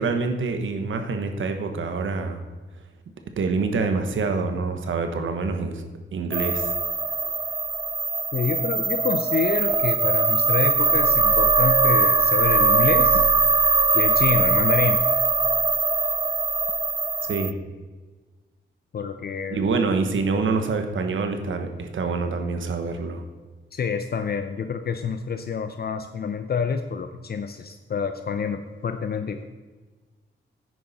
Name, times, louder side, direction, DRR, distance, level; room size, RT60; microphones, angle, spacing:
voice 1, 0.0-2.4 3.4-5.8 6.1-6.8 17.2-17.5 19.5-23.2, right 4 dB, 80° right, 6 dB, 1.2 m, -26 dB
sound 1, 6.3-17.5, right 4 dB, 20° right, 0.4 m, -21 dB
voice 2, 8.3-13.3 13.9-15.0 18.9-19.6 23.7-29.4, left 6 dB, 50° left, 8 dB, 0.6 m, -27 dB
10.0 x 9.4 x 4.2 m, 1.4 s
wide cardioid pair, 110°, 20 cm